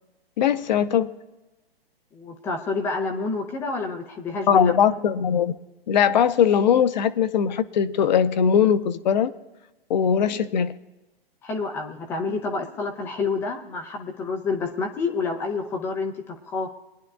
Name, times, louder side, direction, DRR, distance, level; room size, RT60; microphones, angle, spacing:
voice 1, 0.4-1.1 4.5-5.5 5.9-9.3 9.9-10.7, left 8 dB, 45° left, 0.8 m, -20 dB
voice 2, 2.1-4.7 11.4-16.7, left 4 dB, 10° left, 0.4 m, -28 dB
24.0 x 10.5 x 2.3 m
figure-of-eight pair, 125°, 30 cm